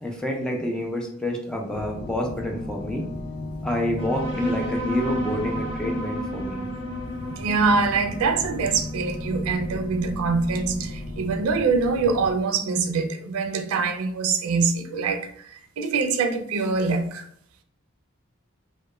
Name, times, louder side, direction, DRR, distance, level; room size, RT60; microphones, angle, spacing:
voice 1, 0.0-3.0 3.6-6.6, left 1 dB, 5° left, 0.3 m, -28 dB
sound 1, 1.7-12.3, left 1 dB, 65° left, 0.5 m, -35 dB
sound 2, 4.0-10.9, equal, 25° left, 0.9 m, -33 dB
voice 2, 7.4-17.2, right 4 dB, 90° right, 0.4 m, -24 dB
2.2 x 2.1 x 3.0 m
head